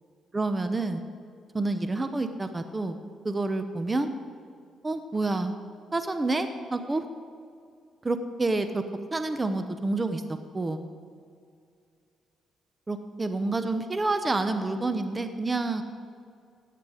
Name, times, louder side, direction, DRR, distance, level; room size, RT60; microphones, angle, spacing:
voice 1, 0.3-1.0 1.5-3.0 3.2-4.1 4.8-5.5 5.9-7.0 8.0-8.8 9.1-10.2 10.5-10.9 12.9-15.8, right 2 dB, 20° right, 9 dB, 0.7 m, -28 dB
14.5 x 9.4 x 5.0 m, 2.3 s
cardioid pair, 90°, 0 cm